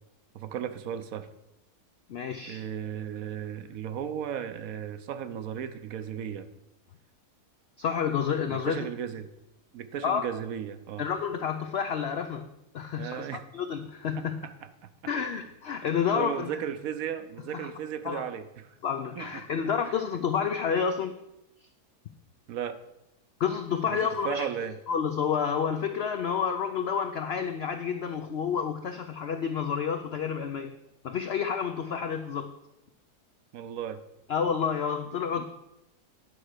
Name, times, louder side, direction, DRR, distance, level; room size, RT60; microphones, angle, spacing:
voice 1, 0.3-1.3 2.5-6.5 8.5-9.3 9.7-11.1 13.0-13.4 14.2-14.5 14.8-14.9 15.2-15.4 16.1-18.8 19.2-19.5 19.8-20.0 22.5-22.8 23.9-24.8 33.5-34.0 35.4-35.5, right 9 dB, 70° right, 10 dB, 1.0 m, -35 dB
voice 2, 2.1-2.6 7.8-8.9 10.0-10.3 11.0-12.5 12.7-13.3 13.5-14.4 15.1-16.5 17.5-17.7 18.0-18.2 18.8-21.2 23.4-24.5 24.9-30.7 31.0-32.5 34.3-35.4, left 7 dB, 70° left, 7 dB, 0.6 m, -29 dB
9.7 x 4.5 x 6.4 m, 0.89 s
omnidirectional pair, 1.6 m